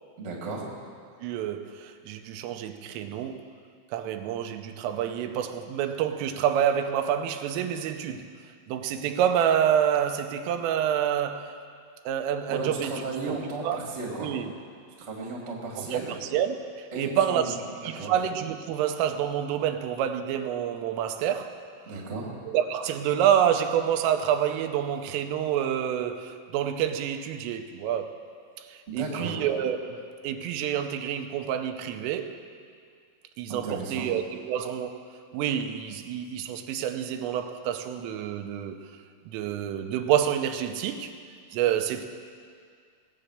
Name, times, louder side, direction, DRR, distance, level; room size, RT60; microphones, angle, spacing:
voice 1, 0.2-0.6 12.5-14.3 15.1-16.1 16.9-17.5 17.8-18.1 21.8-22.3 28.9-29.4 33.5-34.1, right 3 dB, 30° right, 1.2 m, -34 dB
voice 2, 1.2-3.4 3.9-8.3 8.7-11.5 12.1-13.0 13.3-13.4 13.6-13.8 14.2-14.5 15.8-21.6 22.5-28.1 28.6-32.4 33.4-35.0 35.3-38.8 39.3-41.1 41.5-42.0, right 9 dB, 85° right, 3.3 m, -28 dB
18.5 x 8.6 x 6.6 m
omnidirectional pair, 5.7 m